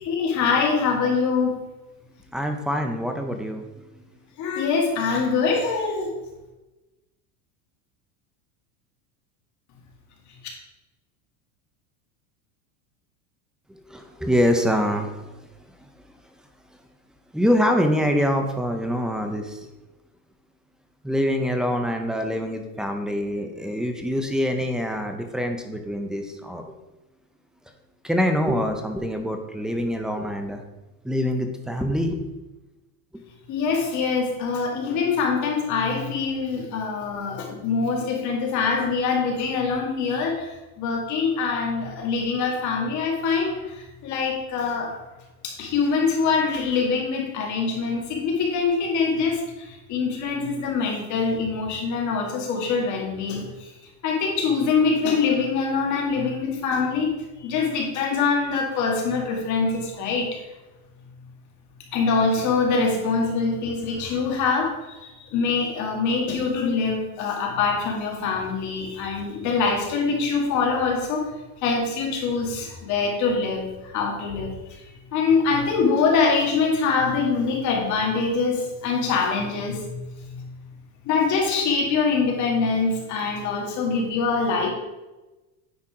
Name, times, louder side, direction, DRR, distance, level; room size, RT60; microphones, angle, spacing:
voice 1, 0.1-1.6 4.4-6.1 33.5-44.9 45.4-53.7 54.0-57.1 57.4-60.3 61.9-71.3 71.6-74.5 75.1-79.9 81.1-84.7, left 4 dB, 40° left, 0 dB, 2.1 m, -24 dB
voice 2, 2.1-4.2 13.7-15.3 15.8-16.0 17.3-19.7 21.0-26.8 28.0-30.6 31.0-32.2, equal, ahead, 5 dB, 0.5 m, -25 dB
9.8 x 4.2 x 4.8 m, 1.1 s
supercardioid pair, 150°, 43 cm